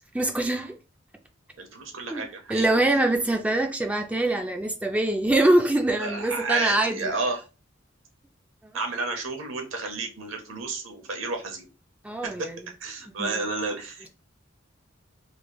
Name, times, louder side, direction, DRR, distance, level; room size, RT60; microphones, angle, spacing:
voice 1, 0.1-0.7 2.1-7.1 12.0-12.6 13.2-13.3, right 1 dB, 5° right, 0.4 m, -24 dB
voice 2, 1.6-2.7 6.0-7.5 8.7-11.7 12.2-12.5 12.8-14.1, right 3 dB, 85° right, 0.9 m, -31 dB
3.2 x 3.1 x 2.3 m
head